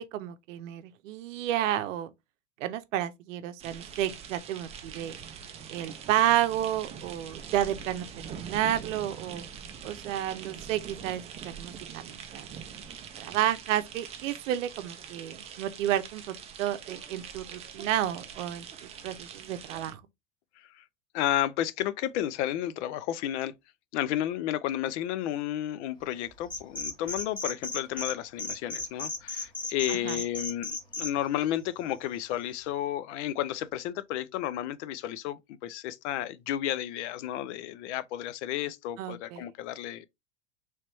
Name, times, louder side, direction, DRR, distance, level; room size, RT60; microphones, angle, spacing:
voice 1, 0.1-2.1 2.6-5.2 5.7-9.4 9.8-12.5 13.2-18.7 19.0-20.0 29.9-30.2 39.0-39.5, right 12 dB, 75° right, 0.7 m, -31 dB
sound 1, 3.6-19.9, right 7 dB, 20° right, 0.3 m, -44 dB
voice 2, 21.1-23.5 23.9-40.0, left 12 dB, 65° left, 0.5 m, -32 dB
sound 2, 26.4-28.1 28.4-31.1, left 3 dB, 10° left, 1.0 m, -34 dB
3.2 x 3.0 x 3.0 m
supercardioid pair, 120°, 38 cm